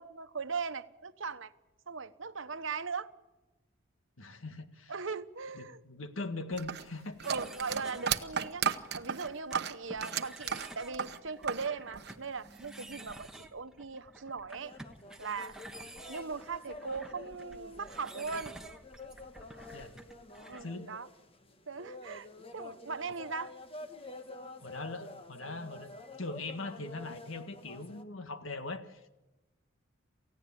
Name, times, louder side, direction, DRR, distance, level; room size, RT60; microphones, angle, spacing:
voice 1, 0.0-1.5 1.9-3.1 4.9-5.8 7.2-8.6 8.9-14.7 15.2-15.5 16.1-18.5 20.5-21.1 21.7-22.3 22.5-23.5, right 5 dB, 70° right, 11 dB, 1.1 m, -39 dB
voice 2, 4.2-4.9 5.5-7.3 19.7-20.0 20.6-20.9 24.6-25.9 26.2-29.1, left 2 dB, 80° left, 9 dB, 1.8 m, -41 dB
sound 1, 6.6-11.7 11.9-12.8, right 7 dB, 50° right, 1.0 m, -34 dB
sound 2, 7.2-20.7, right 1 dB, 5° right, 1.3 m, -51 dB
sound 3, 14.5-28.0, left 2 dB, 25° left, 1.3 m, -49 dB
28.5 x 16.0 x 8.7 m, 1.1 s
head